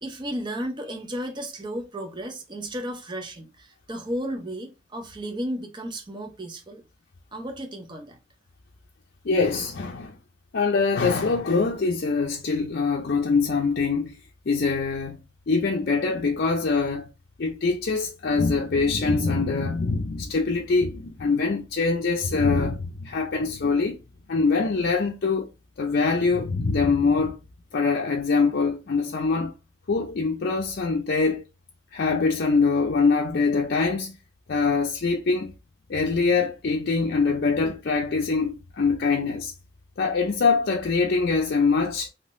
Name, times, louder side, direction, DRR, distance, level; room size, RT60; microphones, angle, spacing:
voice 1, 0.0-6.8 7.3-8.2, equal, 25° right, 0.6 m, -33 dB
voice 2, 9.2-10.2 10.5-14.1 14.5-15.2 15.5-17.1 17.4-24.0 24.3-25.5 25.8-27.4 27.7-29.5 29.9-31.4 31.9-34.2 34.5-35.5 35.9-39.5 40.0-42.1, left 4 dB, 55° left, 0.5 m, -23 dB
3.7 x 2.8 x 2.5 m
head